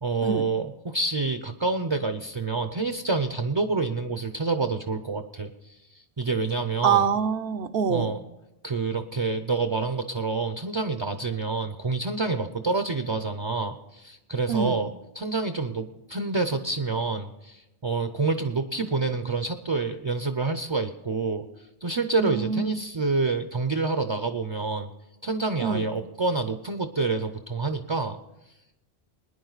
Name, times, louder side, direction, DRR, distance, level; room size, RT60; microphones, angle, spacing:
voice 1, 0.0-7.1 7.9-8.2 8.6-21.4 21.8-24.9 25.2-28.2, right 3 dB, 30° right, 8 dB, 0.6 m, -28 dB
voice 2, 6.8-8.1 14.5-14.8 22.2-22.8 25.6-25.8, right 7 dB, 65° right, 12 dB, 0.8 m, -25 dB
22.5 x 10.0 x 4.0 m, 0.96 s
omnidirectional pair, 1.1 m